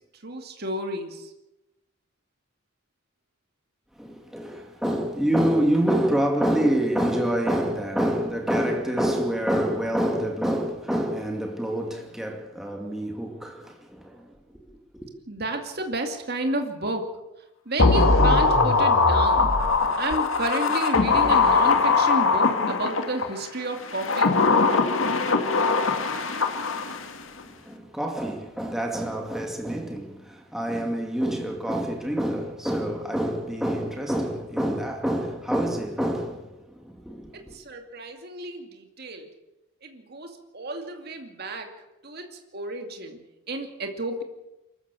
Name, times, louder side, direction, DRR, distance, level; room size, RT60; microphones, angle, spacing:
voice 1, 0.2-1.3 15.3-17.1 17.7-19.6 20.0-24.4 37.3-39.3 39.8-41.7 42.0-44.2, right 2 dB, 50° right, 2.5 m, -32 dB
voice 2, 4.0-14.3 14.9-15.1 27.5-36.5 36.8-37.6, right 1 dB, ahead, 2.4 m, -27 dB
sound 1, 17.8-23.3 23.9-27.1 27.4-27.5, left 4 dB, 75° left, 2.1 m, -21 dB
23.5 x 14.0 x 8.4 m
head